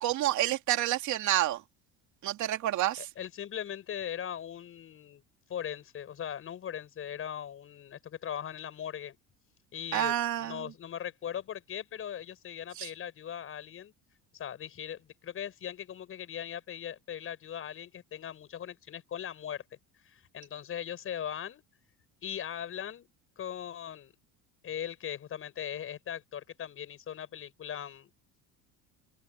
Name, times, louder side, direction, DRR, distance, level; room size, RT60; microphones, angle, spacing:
voice 1, 0.0-1.6 2.2-3.0 9.9-10.6 12.8-12.9, right 13 dB, 55° right, 2.9 m, -28 dB
voice 2, 3.0-5.2 5.5-9.2 9.7-13.9 14.3-19.6 20.0-21.6 22.2-23.1 23.4-24.1 24.6-28.1, left 9 dB, 40° left, 6.8 m, -39 dB
open air
cardioid pair, 145°, 34 cm